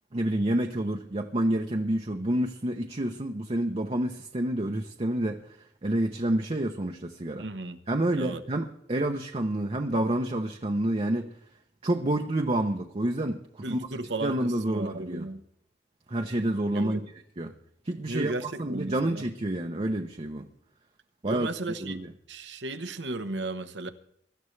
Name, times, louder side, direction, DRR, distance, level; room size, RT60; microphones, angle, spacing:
voice 1, 0.1-5.4 5.8-7.5 7.9-11.3 11.8-15.3 16.1-17.0 17.4-17.5 17.8-18.3 18.6-20.4 21.2-21.5 21.8-22.1, right 1 dB, 35° right, 0.8 m, -28 dB
voice 2, 7.4-7.8 8.1-8.4 13.6-15.4 16.7-17.0 18.0-19.2 21.2-22.0 22.3-23.9, right 2 dB, 80° right, 1.1 m, -35 dB
23.5 x 12.5 x 3.3 m
head